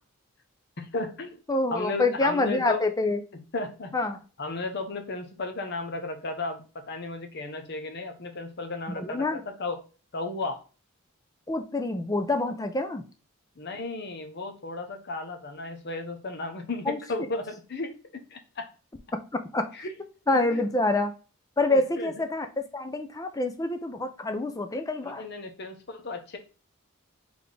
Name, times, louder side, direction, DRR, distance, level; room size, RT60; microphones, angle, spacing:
voice 1, 0.8-1.4 1.7-2.8 3.5-3.9 4.4-9.8 10.1-10.6 13.6-18.7 19.7-19.9 20.3-20.6 21.7-22.1 25.0-26.4, left 2 dB, 50° left, 6 dB, 0.7 m, -34 dB
voice 2, 1.5-3.2 3.9-4.2 9.0-9.4 11.5-13.0 16.9-17.0 19.3-19.7 20.3-21.1 21.6-22.5 22.7-25.2, left 2 dB, 15° left, 8 dB, 0.4 m, -26 dB
4.1 x 3.4 x 3.3 m, 0.35 s
head